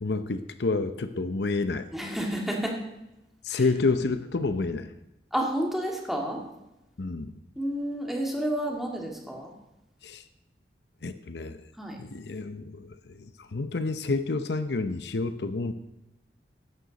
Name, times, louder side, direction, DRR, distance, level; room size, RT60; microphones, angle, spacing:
voice 1, 0.0-1.9 3.4-4.9 7.0-7.3 10.0-10.2 11.0-11.6 12.0-15.7, left 3 dB, 75° left, 10 dB, 0.7 m, -29 dB
voice 2, 1.9-2.8 3.5-3.7 5.3-6.4 7.6-9.5 11.8-12.0, right 1 dB, ahead, -1 dB, 2.2 m, -30 dB
16.0 x 11.5 x 4.1 m, 0.93 s
head